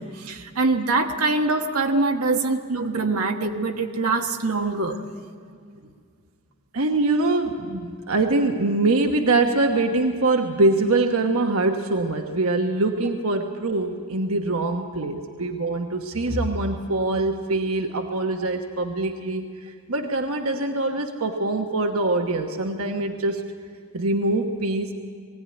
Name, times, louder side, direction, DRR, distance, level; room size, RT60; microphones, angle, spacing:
voice 1, 0.0-5.0, right 3 dB, 90° right, 4 dB, 1.4 m, -24 dB
voice 2, 6.7-19.5 19.9-23.4 23.9-24.9, right 2 dB, 70° right, 4 dB, 1.2 m, -23 dB
21.0 x 16.5 x 9.8 m, 2.2 s
head